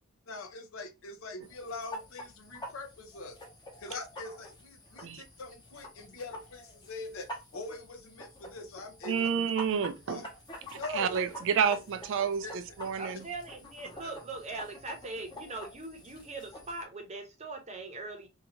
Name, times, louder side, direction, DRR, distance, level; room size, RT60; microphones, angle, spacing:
voice 1, 0.3-3.4 3.8-9.3 9.7-9.8 10.1-10.3 10.7-11.2 11.7-11.8 12.2-12.6 14.0-14.1, left 3 dB, 65° left, 0.6 m, -43 dB
sound 1, 1.4-16.8, equal, 20° left, 0.7 m, -47 dB
voice 2, 9.1-10.2 10.9-13.2, right 7 dB, 60° right, 0.4 m, -29 dB
voice 3, 13.0-18.3, right 3 dB, 30° right, 0.7 m, -41 dB
2.7 x 2.3 x 2.8 m
head